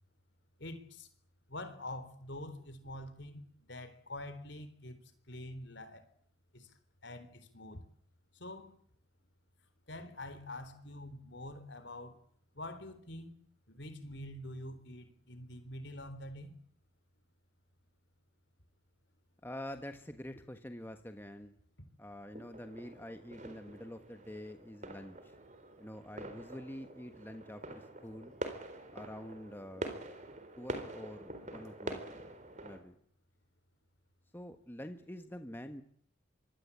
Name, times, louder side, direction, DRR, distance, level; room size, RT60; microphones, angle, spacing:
voice 1, 0.6-1.1 1.5-5.0 5.3-6.1 6.5-6.7 7.0-7.8 8.3-8.8 9.9-12.2 12.5-13.4 13.7-16.5, left 1 dB, 60° left, 11 dB, 3.9 m, -46 dB
voice 2, 19.4-21.6 22.0-25.3 25.8-28.3 28.9-30.0 30.6-32.0 32.6-33.0 34.3-35.8, left 1 dB, 10° left, 7 dB, 1.4 m, -46 dB
sound 1, 22.3-32.8, right 1 dB, 35° right, 4.1 m, -45 dB
25.5 x 24.0 x 8.6 m, 0.63 s
head